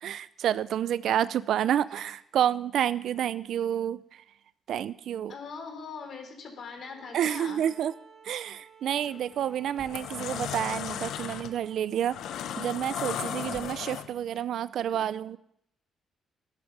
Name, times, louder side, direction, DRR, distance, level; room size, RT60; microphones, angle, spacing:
voice 1, 0.0-4.0 4.7-5.3 7.1-7.9 8.2-12.2 12.6-15.4, right 10 dB, 70° right, 16 dB, 0.5 m, -29 dB
voice 2, 5.3-7.6 14.9-15.0, left 5 dB, 60° left, 4 dB, 3.5 m, -41 dB
Bowed string instrument, 6.8-11.8, right 7 dB, 45° right, 1.7 m, -55 dB
sound 1, 9.0-9.2 9.7-14.4, left 9 dB, 80° left, 0.9 m, -36 dB
sound 2, 9.3-9.9 13.1-14.2, right 2 dB, 25° right, 2.3 m, -51 dB
13.0 x 11.0 x 6.1 m, 0.73 s
cardioid pair, 90°, 0 cm